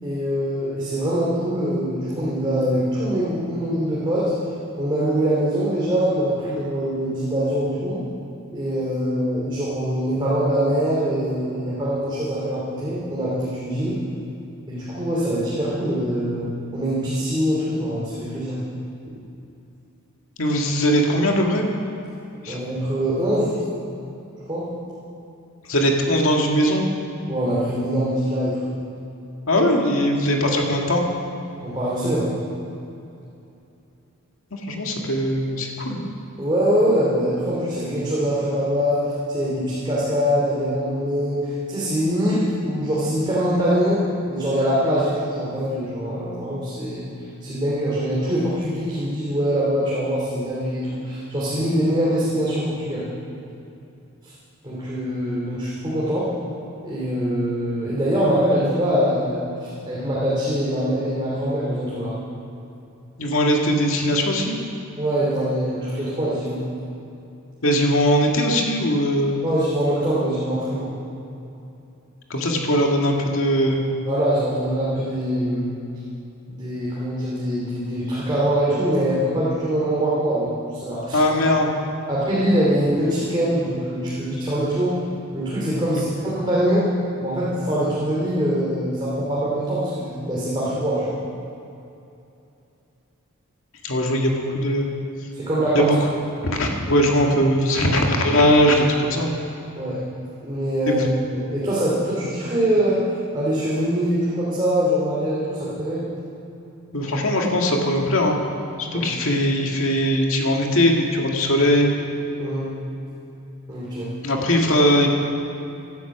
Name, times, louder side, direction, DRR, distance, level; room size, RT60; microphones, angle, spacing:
voice 1, 0.0-4.3 4.8-8.0 8.5-14.0 14.7-18.6 22.5-23.6 24.4-24.7 27.3-28.7 31.6-32.3 36.4-47.0 47.4-53.1 54.2-54.3 54.6-56.3 56.8-62.1 65.0-66.6 69.4-70.9 74.1-75.7 76.5-81.2 82.1-85.0 85.3-86.9 87.2-91.2 95.3-95.9 99.8-100.0 100.4-106.0 108.9-109.1 112.4-112.7 113.7-114.1, equal, 20° right, -8 dB, 2.9 m, -23 dB
voice 2, 20.4-21.7 22.4-22.6 25.7-26.9 29.5-31.0 34.5-36.0 63.2-64.6 67.6-69.4 72.3-73.8 81.1-81.7 85.9-86.0 93.8-94.9 95.8-96.0 96.4-99.3 100.9-101.1 106.9-108.4 108.8-111.9 114.2-115.1, equal, 65° left, 0 dB, 2.2 m, -20 dB
17.0 x 12.0 x 6.1 m, 2.8 s
head